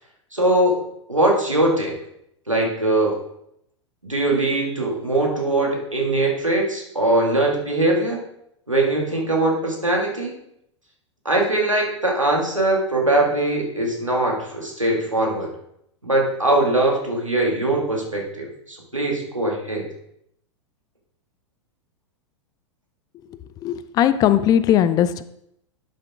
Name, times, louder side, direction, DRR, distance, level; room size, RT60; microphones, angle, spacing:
voice 1, 0.3-0.8 1.1-2.0 2.5-3.2 4.0-8.2 8.7-10.3 11.3-15.5 16.0-19.9, right 2 dB, 90° right, 0 dB, 2.0 m, -21 dB
voice 2, 23.3-25.2, left 10 dB, 25° left, 13 dB, 0.4 m, -19 dB
11.0 x 6.6 x 3.6 m, 0.76 s
figure-of-eight pair, 95°, 16 cm